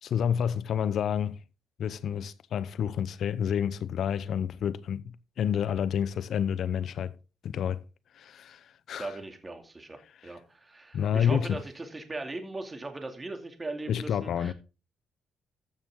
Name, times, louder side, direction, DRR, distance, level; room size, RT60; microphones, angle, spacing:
voice 1, 0.0-1.4 1.8-7.1 7.4-7.8 8.1-9.1 10.2-10.3 10.9-11.6 13.9-14.5, left 8 dB, 65° left, 0.7 m, -29 dB
voice 2, 9.0-10.0 10.2-14.5, right 2 dB, 20° right, 2.5 m, -39 dB
14.5 x 6.4 x 3.8 m
cardioid pair, 90°, 0 cm